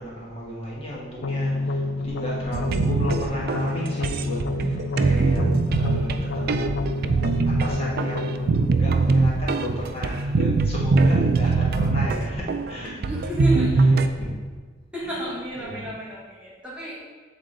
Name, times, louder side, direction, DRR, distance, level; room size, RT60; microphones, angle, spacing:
voice 1, 0.0-6.8 7.4-14.3 15.0-15.1 15.6-15.9, left 1 dB, 30° left, -5 dB, 1.4 m, -34 dB
sound 1, 1.2-10.2, left 2 dB, 65° left, 0.4 m, -30 dB
voice 2, 2.2-2.5 12.9-14.1 14.9-17.0, right 1 dB, 5° right, -7 dB, 1.3 m, -32 dB
sound 2, 2.5-14.1, right 3 dB, 55° right, 0.3 m, -22 dB
7.8 x 3.7 x 3.8 m, 1.4 s
head